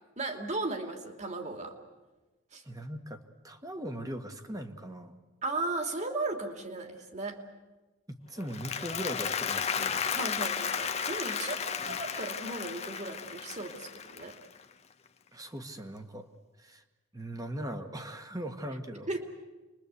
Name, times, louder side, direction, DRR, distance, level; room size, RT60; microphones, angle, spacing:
voice 1, 0.2-1.8 2.5-2.6 5.4-7.4 10.1-14.4 19.1-19.3, right 2 dB, 35° right, 5 dB, 2.8 m, -36 dB
voice 2, 2.6-5.2 8.1-10.1 15.3-16.3 16.6-16.8 17.1-19.1, right 1 dB, 20° right, 6 dB, 1.6 m, -40 dB
Applause, 8.4-14.7, left 6 dB, 30° left, 1.0 m, -34 dB
28.0 x 22.5 x 8.3 m, 1.2 s
head